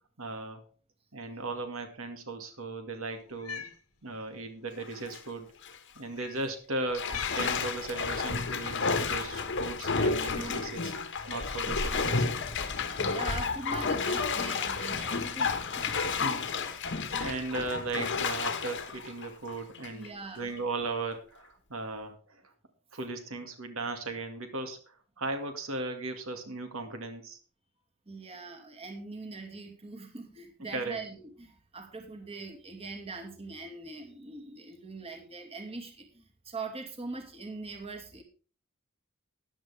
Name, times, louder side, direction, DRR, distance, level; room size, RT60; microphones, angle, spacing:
voice 1, 0.2-0.6 1.1-3.6 4.0-5.5 6.0-10.9 11.3-12.4 16.0-16.5 16.8-22.5 22.9-27.4 30.7-31.0, right 3 dB, 65° right, 5 dB, 2.2 m, -37 dB
Cat, 3.3-3.8 4.8-5.0 6.1-6.4 7.0-7.5 8.5-8.8, left 8 dB, 85° left, 1.8 m, -41 dB
Bathtub (filling or washing), 4.8-5.2 5.6-5.8 6.9-20.1 20.5-20.6, left 4 dB, 55° left, 1.5 m, -31 dB
voice 2, 12.7-16.5 19.9-20.5 28.1-38.2, right 3 dB, 30° right, 4 dB, 2.3 m, -42 dB
14.5 x 10.5 x 3.5 m, 0.38 s
head